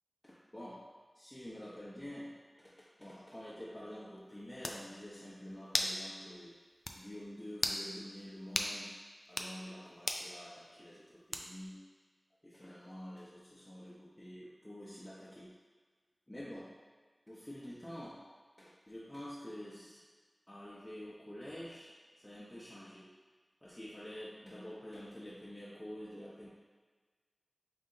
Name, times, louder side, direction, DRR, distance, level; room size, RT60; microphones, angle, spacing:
voice 1, 0.2-0.8 1.1-2.3 3.0-6.5 6.9-9.0 9.3-11.8 12.4-15.5 16.3-16.7 17.3-18.2 18.6-20.0 20.5-21.9 22.2-23.1 23.6-26.5, equal, 20° left, -8 dB, 0.7 m, -48 dB
sound 1, 4.2-4.3 4.6-4.8 5.7-6.0 6.4-6.5 6.9-7.0 7.6-7.8 8.6-8.7 9.3-9.5 10.1-10.3 11.3-11.7, left 1 dB, 55° left, 0.3 m, -35 dB
4.2 x 2.7 x 3.7 m, 1.4 s
wide cardioid pair, 55°, 0 cm